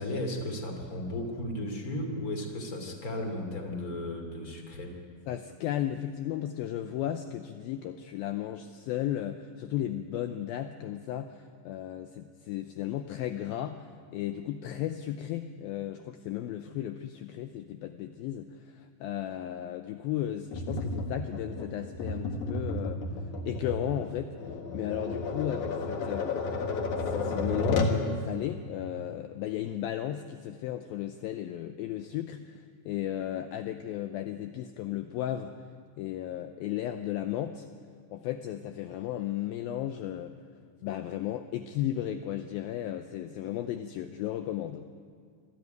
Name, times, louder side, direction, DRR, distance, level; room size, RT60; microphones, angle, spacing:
voice 1, 0.0-4.9, left 1 dB, 25° left, 4 dB, 2.6 m, -35 dB
voice 2, 5.3-13.9 14.1-23.0 23.5-24.4 24.7-26.4 27.1-35.5 36.0-37.7 38.1-40.3 40.8-44.9, left 12 dB, 80° left, 8 dB, 2.2 m, -34 dB
Tap, 20.5-28.0, left 3 dB, 55° left, 2.7 m, -32 dB
25.0 x 14.0 x 9.3 m, 2.2 s
omnidirectional pair, 4.9 m